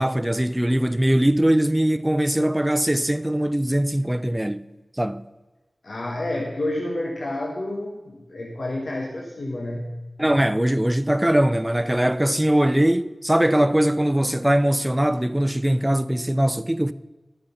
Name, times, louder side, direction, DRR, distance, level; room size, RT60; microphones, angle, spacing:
voice 1, 0.0-4.7 5.0-5.2 10.2-16.9, right 1 dB, 15° right, 0.5 m, -21 dB
voice 2, 5.8-10.0, left 1 dB, 75° left, 1.2 m, -29 dB
12.0 x 6.8 x 5.7 m
cardioid pair, 45°, 0 cm